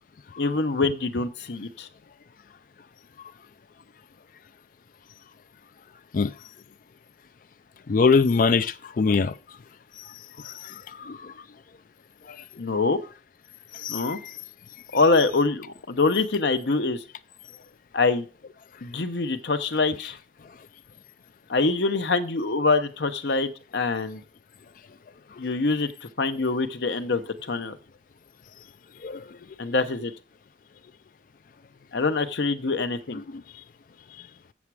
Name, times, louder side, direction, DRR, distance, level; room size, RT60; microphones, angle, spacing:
voice 1, 0.4-1.9 12.6-13.0 13.9-14.2 14.9-17.0 17.9-18.3 18.8-20.2 21.5-24.2 25.4-27.2 27.5-27.8 29.6-30.1 31.9-33.2, left 3 dB, 70° left, 0.8 m, -24 dB
voice 2, 7.9-9.3 10.5-10.6 11.0-11.3 13.8-14.0 29.0-29.2, left 4 dB, 45° left, 0.4 m, -22 dB
7.2 x 7.2 x 4.7 m
head